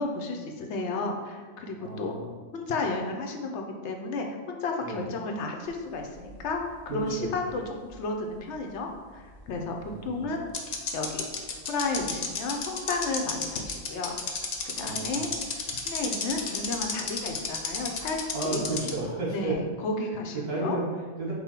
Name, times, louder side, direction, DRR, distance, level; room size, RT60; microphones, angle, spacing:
voice 1, 0.0-2.2 2.5-10.5 10.9-11.3 11.7-14.2 14.6-15.3 15.7-18.9 19.3-20.8, left 3 dB, 75° left, 3 dB, 0.9 m, -32 dB
voice 2, 1.8-2.3 4.8-5.1 6.9-7.6 9.9-10.3 14.8-15.2 18.3-19.6 20.4-21.3, right 2 dB, 60° right, -5 dB, 1.5 m, -33 dB
sound 1, 6.0-7.6 7.9-8.0 9.8-9.9 10.5-18.9, left 5 dB, 50° left, 0.5 m, -32 dB
5.4 x 2.2 x 4.3 m, 1.4 s
omnidirectional pair, 1.2 m